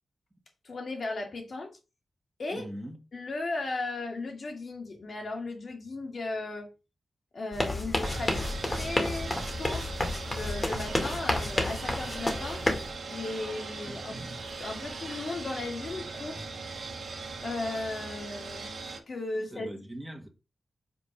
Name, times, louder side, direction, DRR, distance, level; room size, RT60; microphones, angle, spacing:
voice 1, 0.6-1.8 2.4-2.7 3.1-6.7 7.3-9.9 10.3-12.6 13.1-14.2 14.6-16.5 17.4-18.8 19.1-19.7, left 2 dB, 60° left, 2.0 m, -36 dB
voice 2, 2.5-3.0 13.8-14.4 19.3-20.3, right 1 dB, 15° right, 1.7 m, -41 dB
sound 1, 7.5-12.9, left 2 dB, 25° left, 1.7 m, -30 dB
sound 2, 8.0-19.0, right 4 dB, 70° right, 1.4 m, -39 dB
5.4 x 4.6 x 5.7 m
wide cardioid pair, 110°, 0 cm